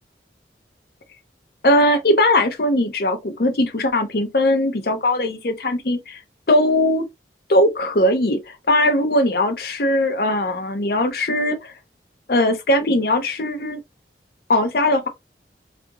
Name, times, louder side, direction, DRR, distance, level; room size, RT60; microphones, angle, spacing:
voice 1, 1.6-6.2 6.5-7.0 7.5-11.7 12.3-13.8 14.5-15.1, left 1 dB, 55° left, 0.6 m, -19 dB
2.8 x 2.5 x 3.4 m
head